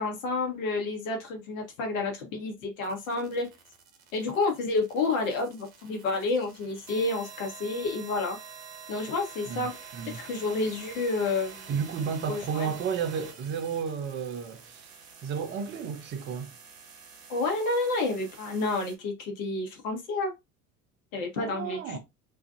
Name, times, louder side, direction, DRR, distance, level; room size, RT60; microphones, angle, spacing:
voice 1, 0.0-3.5 4.1-8.4 8.9-9.7 10.0-11.7 12.3-12.7 17.3-20.3 21.1-22.0, left 3 dB, 60° left, 1.0 m, -30 dB
sound 1, 2.8-19.0, right 6 dB, 60° right, 0.9 m, -48 dB
voice 2, 9.5-10.2 11.7-14.8 15.2-16.5 21.4-22.0, right 7 dB, 25° right, 0.5 m, -32 dB
2.6 x 2.4 x 2.4 m
figure-of-eight pair, 70°, 45 cm